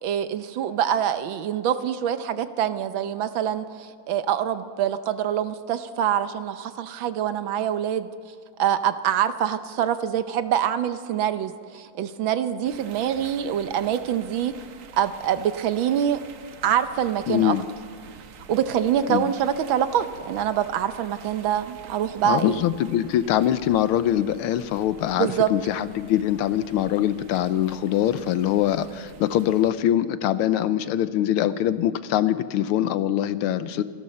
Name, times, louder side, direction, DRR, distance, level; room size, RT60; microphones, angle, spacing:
voice 1, 0.0-8.1 8.6-14.5 14.9-16.2 16.6-17.5 18.5-22.6 25.2-25.5 33.7-33.8, right 9 dB, 70° right, 11 dB, 1.5 m, -25 dB
sound 1, 12.6-29.7, right 6 dB, 50° right, 1.0 m, -47 dB
voice 2, 17.3-17.6 19.1-19.3 22.2-33.8, left 11 dB, 85° left, 13 dB, 1.6 m, -23 dB
28.0 x 12.5 x 4.2 m, 2.3 s
omnidirectional pair, 2.3 m